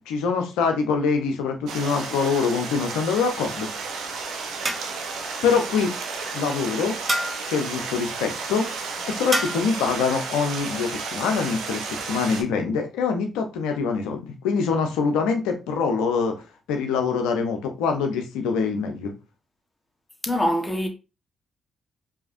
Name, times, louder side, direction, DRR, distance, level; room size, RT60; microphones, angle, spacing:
voice 1, 0.1-3.7 5.4-5.9 6.3-7.0 7.5-8.7 9.1-16.3 16.7-19.1, left 5 dB, 75° left, 0.7 m, -24 dB
Stream, 1.7-12.4, right 4 dB, 70° right, 0.8 m, -32 dB
sound 1, 4.6-5.2 7.1-7.6 9.3-9.8, right 1 dB, 30° right, 0.9 m, -29 dB
voice 2, 20.2-20.9, equal, 15° left, 1.2 m, -23 dB
4.8 x 2.8 x 2.6 m
hypercardioid pair, 45°, 0 cm